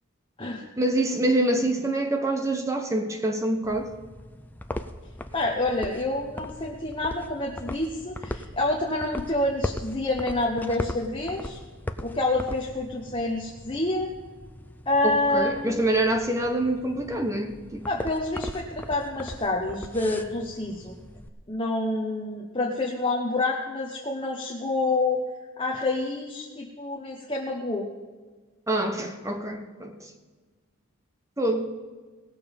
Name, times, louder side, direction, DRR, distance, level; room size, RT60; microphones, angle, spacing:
voice 1, 0.8-3.9 15.0-17.9 28.7-30.1 31.4-31.7, right 1 dB, 15° right, 5 dB, 0.9 m, -26 dB
sound 1, 3.6-21.3, left 1 dB, 10° left, 0.5 m, -39 dB
voice 2, 5.3-11.6 12.0-14.1 14.9-15.8 17.9-20.9 21.5-25.2 25.6-27.9, left 2 dB, 25° left, -1 dB, 1.1 m, -28 dB
18.0 x 6.8 x 5.4 m, 1.4 s
head